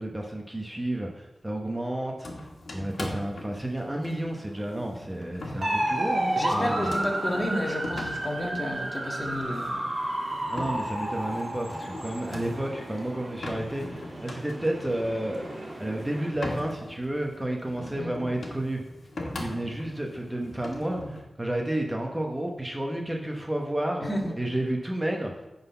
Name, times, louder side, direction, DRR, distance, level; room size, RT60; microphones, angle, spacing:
voice 1, 0.0-2.5 2.7-6.9 10.5-15.4 15.8-18.8 19.4-24.1 24.4-25.3, right 1 dB, 20° right, 1 dB, 1.0 m, -31 dB
sound 1, 2.2-21.2, left 1 dB, 75° left, 1.5 m, -41 dB
sound 2, 5.6-16.3, right 1 dB, 50° right, 1.8 m, -32 dB
voice 2, 6.3-9.8 18.0-18.1 24.0-24.3, left 1 dB, 30° left, 0 dB, 1.6 m, -31 dB
9.4 x 4.1 x 5.6 m, 1.0 s
wide cardioid pair, 70°, 0 cm